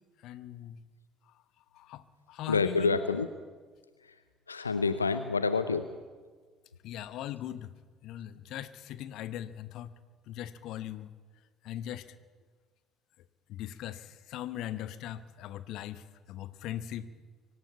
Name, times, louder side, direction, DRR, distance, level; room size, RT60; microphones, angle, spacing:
voice 1, 0.2-0.8 1.7-2.0 2.3-3.0 6.8-7.7 8.0-9.9 10.3-11.1 11.6-12.1 13.5-17.1, left 12 dB, 55° left, 14 dB, 0.9 m, -40 dB
voice 2, 2.5-3.3 4.5-5.9, left 4 dB, 85° left, 12 dB, 0.6 m, -28 dB
24.0 x 12.5 x 8.8 m, 1.5 s
figure-of-eight pair, 55°, 0 cm